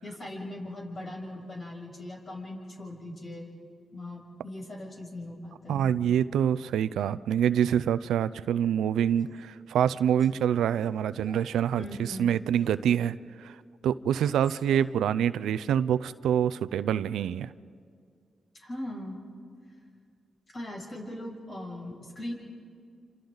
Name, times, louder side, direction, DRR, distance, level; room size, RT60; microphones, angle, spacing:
voice 1, 0.0-3.5 3.9-5.9 11.7-12.3 18.6-19.2 20.5-22.3, left 1 dB, 50° left, -1 dB, 6.9 m, -39 dB
voice 2, 5.7-13.2 13.4-13.5 13.8-17.5, right 9 dB, 85° right, 16 dB, 0.5 m, -26 dB
Male speech man speaking, 9.1-9.5 10.2-10.5 11.1-11.6 12.6-12.9 14.2-15.0, left 1 dB, 20° left, 2.8 m, -52 dB
29.0 x 27.5 x 4.0 m, 2.2 s
supercardioid pair, 50°, 0 cm